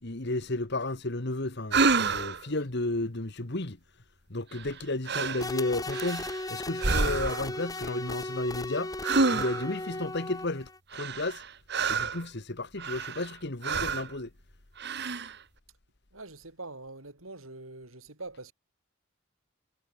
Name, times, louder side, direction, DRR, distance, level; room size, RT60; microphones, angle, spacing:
voice 1, 0.0-3.8 4.3-8.9 9.3-11.4 11.9-14.3, left 2 dB, 55° left, 1.8 m, -33 dB
sound 1, 1.7-2.5 4.5-4.8 5.1-5.5 5.9-6.4 6.8-7.5 9.0-9.8 10.9-12.2 12.8-13.3 13.6-14.1 14.8-15.4, right 4 dB, 55° right, 1.8 m, -28 dB
sound 2, 5.4-10.8, left 2 dB, 20° left, 2.4 m, -36 dB
voice 2, 16.1-18.5, right 2 dB, 85° right, 5.9 m, -44 dB
head